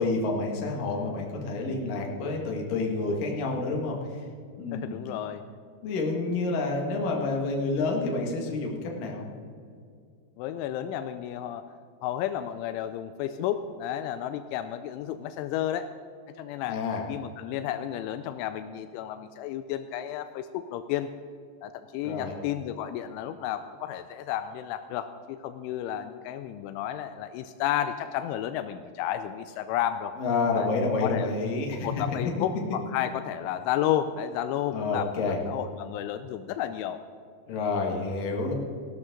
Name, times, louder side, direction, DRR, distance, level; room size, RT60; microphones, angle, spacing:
voice 1, 0.0-4.2 4.6-5.0 5.8-9.3 16.7-17.0 22.0-22.3 30.2-31.9 34.7-35.4 37.5-38.5, left 3 dB, 55° left, 0 dB, 3.0 m, -29 dB
voice 2, 4.7-5.4 10.4-11.7 12.0-15.9 16.4-16.8 17.1-21.1 21.6-30.1 30.6-30.7 31.0-31.3 31.8-37.0, left 11 dB, 85° left, 10 dB, 3.0 m, -32 dB
18.0 x 12.0 x 3.8 m, 2.2 s
omnidirectional pair, 5.5 m